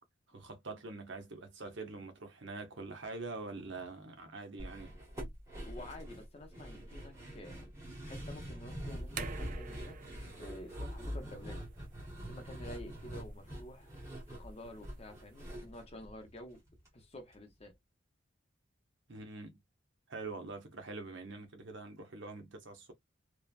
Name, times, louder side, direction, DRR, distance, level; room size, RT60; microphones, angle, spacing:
voice 1, 0.3-4.9 19.1-19.6 20.1-22.9, right 3 dB, 65° right, 0.8 m, -44 dB
sound 1, 4.6-16.9 17.2-17.3 17.6-17.7, equal, 15° right, 1.1 m, -44 dB
voice 2, 5.6-7.7 8.0-10.0 10.4-11.6 12.3-13.9 14.3-16.6 16.9-17.8, left 1 dB, 30° left, 0.7 m, -50 dB
sound 2, 8.9-15.5, right 7 dB, 40° right, 0.3 m, -51 dB
3.1 x 2.2 x 2.4 m
head